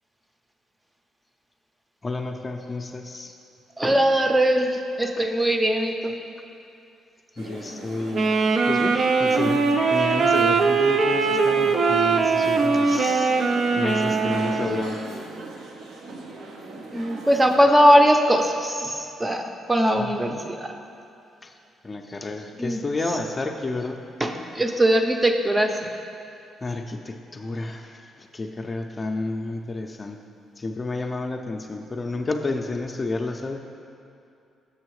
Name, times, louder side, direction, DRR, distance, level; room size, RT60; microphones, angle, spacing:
voice 1, 2.0-3.3 5.2-5.3 7.4-8.3 8.6-9.6 9.9-13.3 13.8-15.0 20.0-20.1 21.4-21.5 21.8-24.1 26.6-30.2 30.6-33.6, left 2 dB, 25° left, 3 dB, 0.5 m, -30 dB
voice 2, 3.8-6.2 16.9-19.4 19.7-20.7 22.6-22.8 24.2-25.9, equal, 15° right, 5 dB, 0.6 m, -20 dB
sound 1, 7.4-17.6, right 2 dB, 80° right, 0.8 m, -38 dB
Wind instrument woodwind instrument, 8.1-15.1, right 4 dB, 60° right, 0.4 m, -21 dB
6.9 x 5.6 x 4.7 m, 2.7 s
cardioid pair, 90°, 0 cm